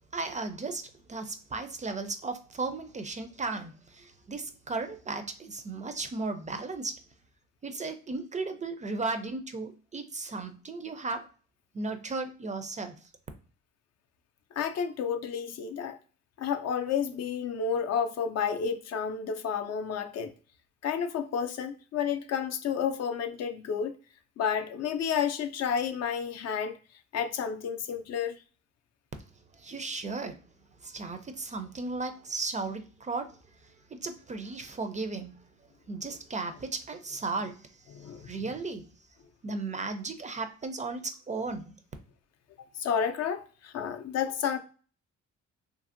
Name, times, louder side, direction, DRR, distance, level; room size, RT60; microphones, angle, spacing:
voice 1, 0.1-6.9 7.6-11.2 11.7-13.1 29.5-30.4 30.7-35.4 35.9-38.9 39.4-41.7, right 3 dB, 25° right, 0.4 m, -35 dB
voice 2, 14.6-16.0 16.4-20.3 20.8-24.0 24.4-26.8 27.1-28.4 37.9-38.3 42.6-44.6, left 7 dB, 60° left, 0.4 m, -31 dB
2.7 x 2.6 x 2.5 m
cardioid pair, 90°, 30 cm